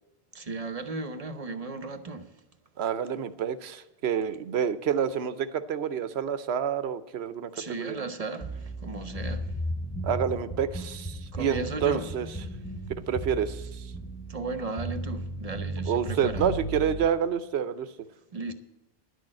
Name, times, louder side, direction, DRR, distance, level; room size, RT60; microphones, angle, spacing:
voice 1, 0.3-2.3 7.5-9.5 11.3-12.0 14.3-16.6 18.3-18.5, right 3 dB, 40° right, 0.8 m, -35 dB
voice 2, 2.8-8.1 10.0-12.3 13.0-13.9 15.9-17.9, right 8 dB, 85° right, 0.9 m, -28 dB
sound 1, 8.4-17.1, right 1 dB, 10° left, 0.7 m, -35 dB
11.0 x 6.4 x 8.6 m
omnidirectional pair, 1.0 m